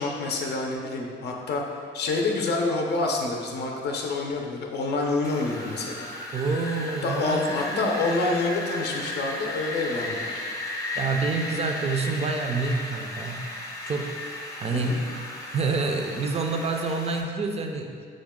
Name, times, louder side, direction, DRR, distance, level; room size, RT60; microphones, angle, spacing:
voice 1, 0.0-1.6 1.9-6.1 7.0-10.4 14.7-15.0, left 3 dB, 55° left, 1 dB, 0.6 m, -27 dB
Wind, 5.2-17.2, left 1 dB, 15° left, 0.7 m, -35 dB
voice 2, 6.3-7.4 7.7-7.9 10.9-13.4 13.9-15.0 15.5-17.9, right 4 dB, 30° right, 3 dB, 0.5 m, -28 dB
6.2 x 2.2 x 3.6 m, 2.1 s
cardioid pair, 90°, 20 cm